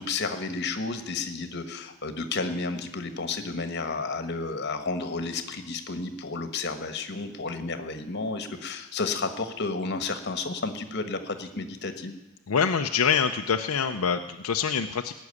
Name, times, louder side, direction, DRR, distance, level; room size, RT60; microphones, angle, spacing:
voice 1, 0.0-12.2, left 3 dB, 50° left, 8 dB, 1.4 m, -32 dB
voice 2, 12.5-15.1, left 6 dB, 80° left, 6 dB, 0.6 m, -25 dB
18.0 x 6.3 x 9.7 m, 1.0 s
head